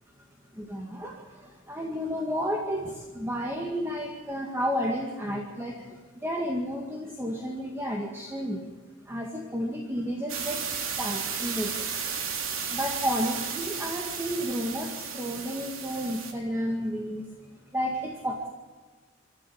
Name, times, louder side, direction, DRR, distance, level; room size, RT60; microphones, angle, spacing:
voice 1, 0.6-8.7 9.1-10.6 11.0-11.7 12.7-17.3 17.7-18.5, equal, 10° right, 0 dB, 2.0 m, -31 dB
sound 1, 10.3-16.3, right 6 dB, 85° right, 3.1 m, -34 dB
27.0 x 12.5 x 8.6 m, 1.4 s
head